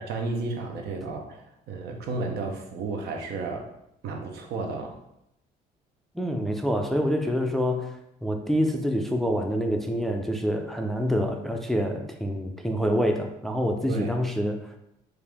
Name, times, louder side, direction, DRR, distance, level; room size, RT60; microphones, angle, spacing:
voice 1, 0.0-3.7 4.0-5.0 13.9-14.2, right 3 dB, 75° right, 3 dB, 0.8 m, -32 dB
voice 2, 6.1-14.6, equal, ahead, 3 dB, 0.4 m, -26 dB
4.6 x 2.5 x 3.4 m, 0.82 s
cardioid pair, 110°, 17 cm